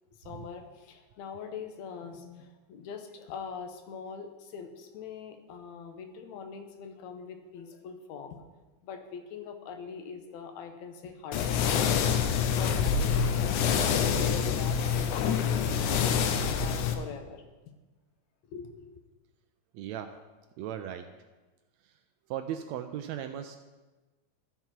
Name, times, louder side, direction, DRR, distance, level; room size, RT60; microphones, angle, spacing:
voice 1, 0.1-8.4 8.8-12.2 12.6-17.4 18.4-18.8, left 6 dB, 75° left, 6 dB, 2.2 m, -43 dB
sound 1, 11.3-16.9, left 7 dB, 90° left, 2.1 m, -26 dB
voice 2, 19.7-20.1 20.6-21.1 22.3-23.6, right 10 dB, 80° right, 7 dB, 1.6 m, -36 dB
13.5 x 4.6 x 5.8 m, 1.2 s
omnidirectional pair, 3.4 m